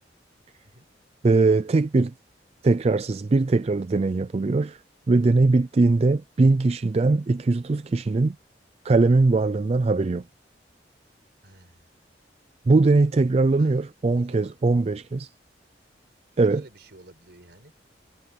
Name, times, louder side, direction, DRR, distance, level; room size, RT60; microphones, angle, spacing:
voice 1, 1.2-2.1 2.6-4.8 5.1-8.4 8.8-10.2 12.7-15.3 16.4-16.6, right 3 dB, 35° right, 0.4 m, -21 dB
voice 2, 11.4-11.9 13.6-14.6 16.4-17.7, right 1 dB, 65° right, 5.0 m, -51 dB
head